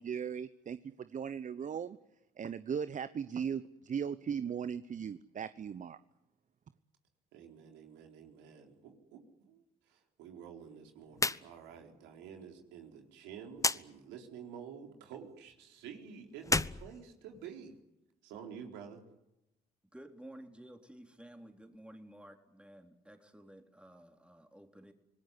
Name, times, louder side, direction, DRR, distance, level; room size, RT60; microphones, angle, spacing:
voice 1, 0.0-2.0 2.4-6.0, right 7 dB, 45° right, 14 dB, 1.0 m, -38 dB
voice 2, 7.3-17.7 18.2-19.0, right 7 dB, 80° right, 3 dB, 4.1 m, -50 dB
sound 1, 11.1-11.4 11.7-11.8 13.6-13.8 16.4-17.7, left 3 dB, 15° left, 1.1 m, -32 dB
voice 3, 19.9-24.9, right 1 dB, 5° right, 4 dB, 3.9 m, -53 dB
26.5 x 19.0 x 9.8 m, 0.88 s
hypercardioid pair, 55°, 19 cm